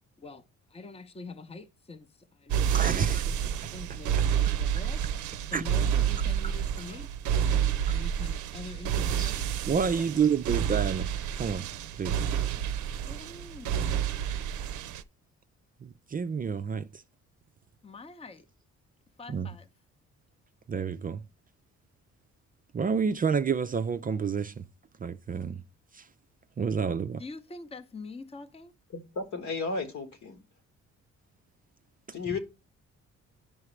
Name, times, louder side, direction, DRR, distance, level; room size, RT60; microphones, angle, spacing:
voice 1, 0.7-3.4 3.7-9.4 10.1-10.2 13.0-13.9 17.8-18.5 19.2-19.7 27.2-28.7, left 3 dB, 20° left, 0.7 m, -45 dB
sound 1, 2.5-15.0, right 9 dB, 75° right, 0.6 m, -29 dB
voice 2, 2.7-3.2 5.5-5.6 7.9-8.0 9.2-9.3 9.7-11.1 11.3-11.7 11.9-12.2 15.8-17.0 19.3-19.5 20.7-21.2 22.7-24.7 25.0-25.6 25.9-26.1 26.6-27.2, right 6 dB, 30° right, 0.4 m, -29 dB
voice 3, 28.9-30.4 32.1-32.4, left 4 dB, 70° left, 1.6 m, -34 dB
10.5 x 4.8 x 3.2 m
cardioid pair, 90°, 30 cm